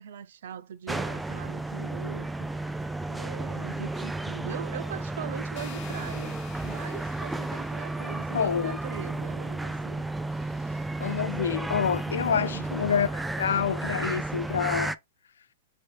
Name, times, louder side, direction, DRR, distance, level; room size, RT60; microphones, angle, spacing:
voice 1, 0.0-2.8 3.1-10.1 10.3-10.8 12.2-12.7, right 9 dB, 70° right, 0.4 m, -41 dB
sound 1, 0.9-15.0, right 2 dB, 5° right, 0.3 m, -33 dB
sound 2, 5.6-8.4, left 11 dB, 40° left, 0.9 m, -48 dB
voice 2, 8.3-8.8 11.0-15.0, left 7 dB, 80° left, 0.4 m, -27 dB
5.1 x 2.7 x 3.3 m
hypercardioid pair, 115°, 0 cm